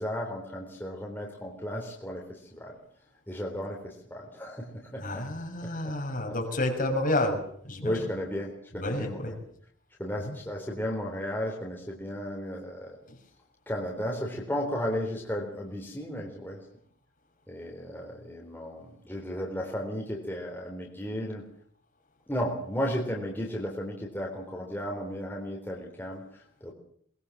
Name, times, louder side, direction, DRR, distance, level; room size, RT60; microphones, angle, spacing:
voice 1, 0.0-2.8 3.3-5.3 5.6-6.6 7.8-9.4 10.0-13.0 13.7-16.6 17.5-21.4 22.3-26.7, equal, 10° left, -2 dB, 3.8 m, -34 dB
voice 2, 5.0-8.0 8.7-9.3 10.2-10.3 13.1-13.2, left 1 dB, 45° left, 2 dB, 6.7 m, -30 dB
23.0 x 21.0 x 7.3 m, 0.63 s
head